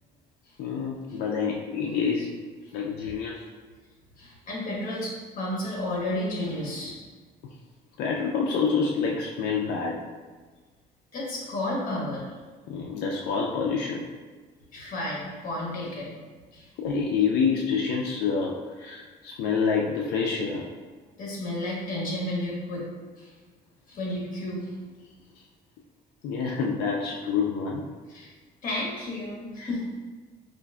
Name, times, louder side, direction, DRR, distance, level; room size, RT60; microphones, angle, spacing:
voice 1, 0.6-2.4 2.7-3.4 8.0-10.0 12.7-14.1 16.8-20.7 26.2-27.9 29.6-29.7, left 5 dB, 75° left, -1 dB, 0.4 m, -27 dB
voice 2, 4.2-7.0 11.1-12.3 14.7-16.1 16.5-16.7 21.2-22.9 23.2-23.3 23.9-24.7 28.1-28.3 28.6-29.9, left 1 dB, 55° left, -4 dB, 1.4 m, -32 dB
5.0 x 2.5 x 2.3 m, 1.4 s
cardioid pair, 110°, 17 cm